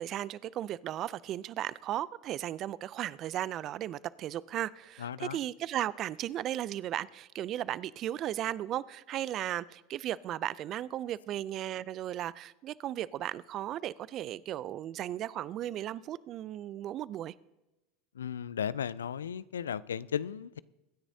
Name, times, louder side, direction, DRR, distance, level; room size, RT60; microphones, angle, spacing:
voice 1, 0.0-17.3, right 12 dB, 45° right, 21 dB, 0.4 m, -36 dB
voice 2, 5.0-5.4 18.1-20.6, left 8 dB, 85° left, 20 dB, 0.3 m, -35 dB
23.5 x 9.9 x 2.8 m, 1.0 s
hypercardioid pair, 85°, 0 cm